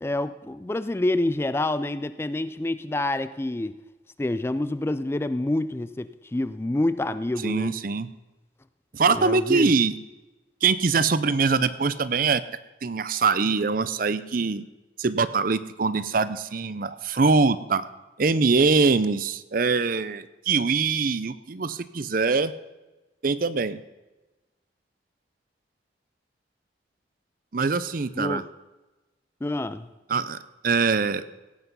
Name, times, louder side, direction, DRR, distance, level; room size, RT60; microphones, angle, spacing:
voice 1, 0.0-3.7 4.2-7.7 9.1-9.7 28.2-28.5 29.4-29.9, left 1 dB, 15° left, 13 dB, 0.3 m, -27 dB
voice 2, 7.4-8.1 8.9-10.0 10.6-12.4 12.8-14.6 15.0-17.9 18.2-22.5 23.2-23.8 27.5-28.4 30.1-30.4 30.6-31.2, right 4 dB, 50° right, 15 dB, 0.6 m, -23 dB
17.0 x 8.2 x 5.4 m, 1.1 s
head